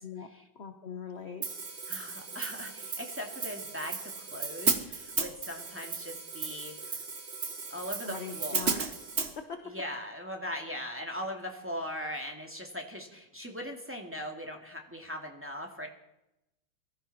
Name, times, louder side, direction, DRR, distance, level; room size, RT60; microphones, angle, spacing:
voice 1, 0.6-1.5 8.0-8.8 9.6-9.7, left 6 dB, 40° left, 6 dB, 1.0 m, -41 dB
Hi-hat, 1.4-9.3, right 4 dB, 35° right, 1.4 m, -35 dB
voice 2, 1.9-6.7 7.7-8.9 9.6-15.9, equal, 5° right, 2 dB, 2.1 m, -40 dB
22.5 x 14.5 x 4.2 m, 0.89 s
omnidirectional pair, 2.3 m